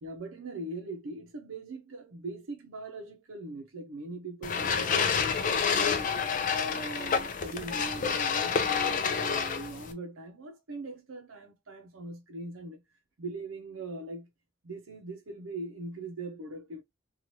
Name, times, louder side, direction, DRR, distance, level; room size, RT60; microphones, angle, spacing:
voice 1, 0.0-6.1 6.5-12.8 13.2-14.3 14.6-16.8, right 2 dB, 85° right, 0.6 m, -41 dB
sound 1, 4.4-9.9, left 6 dB, 40° left, 0.4 m, -28 dB
3.0 x 2.3 x 2.8 m
head